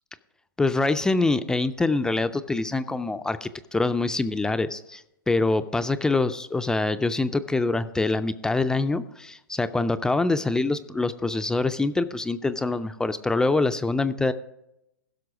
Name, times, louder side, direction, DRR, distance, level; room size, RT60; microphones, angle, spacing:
voice 1, 0.6-14.3, left 3 dB, 5° left, 10 dB, 0.3 m, -25 dB
15.5 x 6.1 x 4.9 m, 0.85 s
hypercardioid pair, 120°, 11 cm